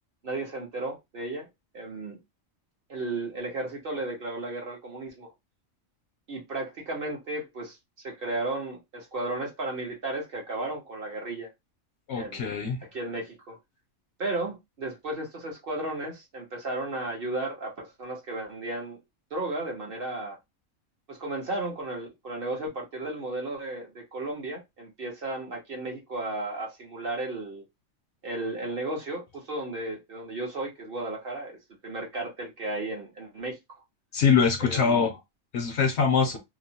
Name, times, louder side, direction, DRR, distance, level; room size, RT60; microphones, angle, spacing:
voice 1, 0.2-1.5 1.7-2.2 2.9-5.3 6.3-7.8 8.0-11.5 12.1-12.5 12.9-13.6 14.2-19.0 19.3-20.4 21.1-27.6 28.2-33.6 34.6-35.0, right 2 dB, 50° right, 1.0 m, -34 dB
voice 2, 12.1-12.9 34.1-35.2 35.5-36.4, left 6 dB, 65° left, 0.8 m, -23 dB
2.9 x 2.1 x 2.7 m
omnidirectional pair, 1.4 m